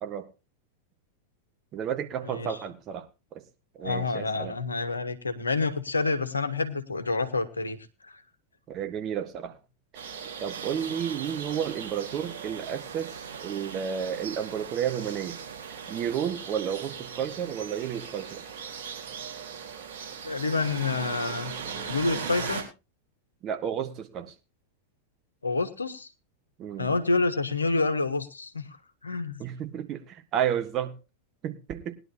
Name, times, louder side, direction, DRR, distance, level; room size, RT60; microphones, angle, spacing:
voice 1, 1.7-3.1 3.3-3.4 3.8-4.6 8.7-9.6 10.4-15.4 15.9-18.4 23.4-24.3 26.6-27.0 29.4-31.0 31.4-31.9, right 9 dB, 35° right, 1.8 m, -32 dB
voice 2, 3.8-7.8 8.0-8.2 20.2-21.5 21.9-22.7 25.4-26.1 26.8-28.8 29.0-29.4, left 3 dB, 75° left, 1.4 m, -28 dB
sound 1, 9.9-22.6, right 6 dB, 55° right, 4.0 m, -39 dB
sound 2, 10.5-16.2, right 6 dB, 75° right, 6.2 m, -47 dB
20.0 x 11.0 x 2.7 m
figure-of-eight pair, 90°, 0 cm